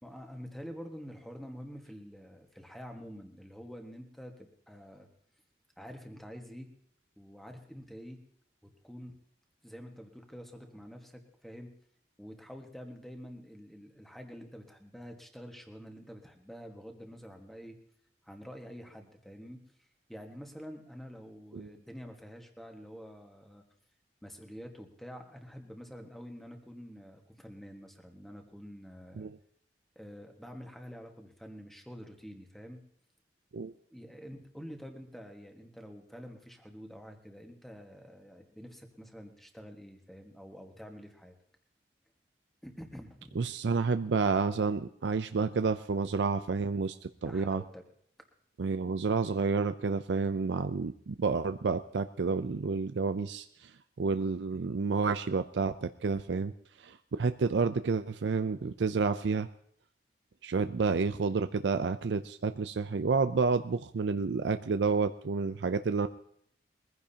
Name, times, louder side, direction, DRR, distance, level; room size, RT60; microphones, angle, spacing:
voice 1, 0.0-5.1 5.8-6.7 7.2-8.2 8.8-9.1 9.6-11.7 12.2-17.8 18.2-19.6 20.1-23.6 24.2-29.3 29.9-32.8 33.9-41.3 42.6-43.5 47.2-47.8 54.5-54.6, equal, ahead, 3 dB, 1.5 m, -47 dB
voice 2, 43.4-47.6 48.6-53.7 54.0-56.5 56.8-59.5 60.4-66.1, right 4 dB, 80° right, 10 dB, 0.5 m, -30 dB
22.0 x 15.0 x 2.8 m, 0.67 s
head